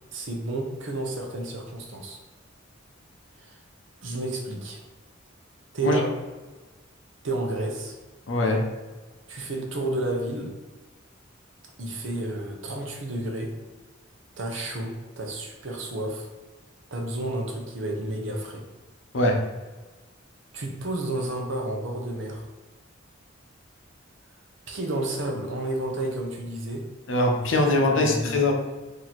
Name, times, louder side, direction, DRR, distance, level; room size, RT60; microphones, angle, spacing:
voice 1, 0.1-2.2 3.4-3.6 4.0-4.8 5.7-6.1 7.2-8.0 9.3-10.5 11.8-13.5 14.4-16.3 16.9-18.6 20.5-22.5 24.7-26.8 27.9-28.4, right 2 dB, 70° right, 2 dB, 0.7 m, -31 dB
voice 2, 8.3-8.6 19.1-19.4 27.1-28.5, left 2 dB, 70° left, 1 dB, 0.7 m, -22 dB
3.0 x 2.7 x 4.1 m, 1.2 s
head